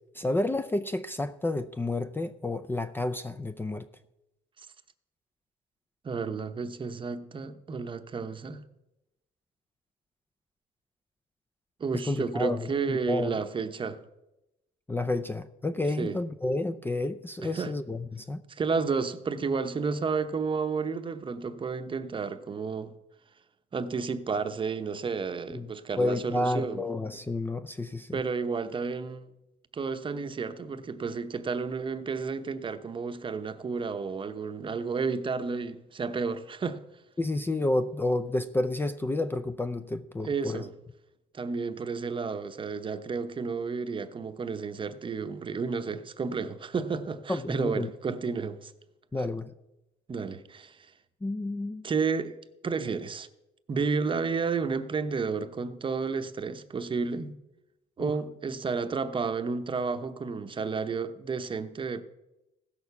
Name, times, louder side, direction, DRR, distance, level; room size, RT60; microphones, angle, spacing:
voice 1, 0.1-3.9 12.1-13.3 14.9-18.4 25.5-25.7 26.0-28.2 37.2-40.6 47.3-47.9 49.1-49.5 51.2-51.9 58.0-58.1, left 2 dB, 10° left, 0.5 m, -30 dB
voice 2, 6.0-8.6 11.8-14.0 16.0-16.2 17.4-17.7 18.5-22.9 23.7-26.8 28.1-29.3 29.7-36.8 40.2-40.7 41.3-48.7 50.1-50.9 51.8-52.4 52.6-53.3 53.7-57.3 58.0-62.0, right 5 dB, 30° right, 0.8 m, -31 dB
15.5 x 6.5 x 6.8 m
cardioid pair, 110°, 17 cm